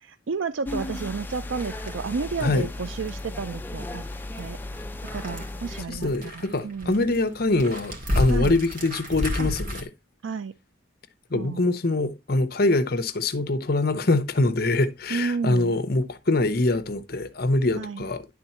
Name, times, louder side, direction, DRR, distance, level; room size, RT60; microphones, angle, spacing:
voice 1, 0.3-4.0 4.4-4.6 5.1-7.0 8.3-8.5 9.4-9.5 10.2-10.5 11.3-11.6 15.1-15.7 17.7-18.1, right 5 dB, 80° right, 0.5 m, -31 dB
sound 1, 0.6-5.8, left 2 dB, 10° left, 0.4 m, -35 dB
sound 2, 1.5-9.8, left 1 dB, 45° right, 2.2 m, -32 dB
voice 2, 5.9-9.9 11.3-18.3, left 2 dB, 50° left, 0.8 m, -24 dB
10.5 x 3.9 x 4.3 m
head